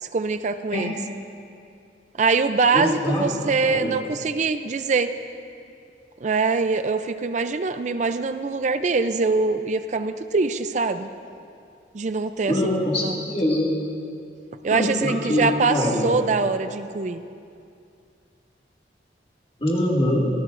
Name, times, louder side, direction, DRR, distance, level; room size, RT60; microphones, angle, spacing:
voice 1, 0.0-1.0 2.2-5.1 6.2-11.1 11.9-12.7 13.0-13.2 14.6-17.2, right 4 dB, 40° right, 10 dB, 0.4 m, -23 dB
voice 2, 2.7-3.2 3.6-3.9 12.5-13.7 14.7-16.1 19.6-20.3, left 1 dB, 30° left, -4 dB, 2.1 m, -23 dB
25.0 x 16.5 x 2.5 m, 2.5 s
head